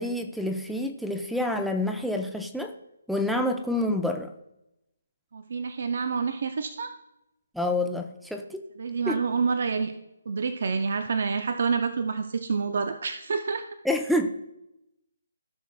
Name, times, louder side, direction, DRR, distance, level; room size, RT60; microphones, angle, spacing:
voice 1, 0.0-2.7 3.1-4.3 7.5-8.6 9.1-9.2 13.8-14.3, left 1 dB, ahead, 5 dB, 0.6 m, -28 dB
voice 2, 5.3-6.9 8.8-9.9 10.3-13.7, right 5 dB, 60° right, 9 dB, 0.6 m, -28 dB
16.0 x 6.1 x 2.2 m, 0.87 s
figure-of-eight pair, 145°, 0 cm